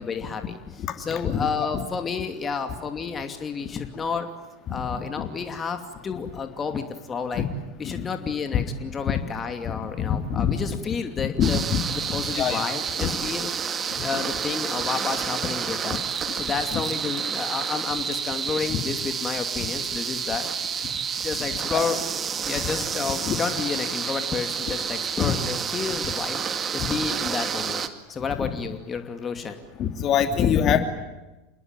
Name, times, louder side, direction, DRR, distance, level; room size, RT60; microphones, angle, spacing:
voice 1, 0.0-4.3 4.7-7.4 7.8-11.6 11.9-13.5 14.0-16.0 16.3-20.5 21.2-22.0 22.5-26.4 26.7-29.6, left 5 dB, 25° left, 7 dB, 2.7 m, -31 dB
voice 2, 4.7-5.3 7.3-7.4 7.8-8.1 8.5-8.6 9.1-9.2 9.6-9.7 10.0-10.6 11.2-11.8 12.1-12.6 16.7-16.8 23.3-23.4 25.2-25.4 28.4-28.5 29.8-30.8, left 8 dB, 40° left, 8 dB, 2.8 m, -24 dB
sound 1, 11.4-27.9, right 7 dB, 30° right, 2.3 m, -29 dB
28.5 x 21.0 x 9.1 m, 1.0 s
hypercardioid pair, 85°, 0 cm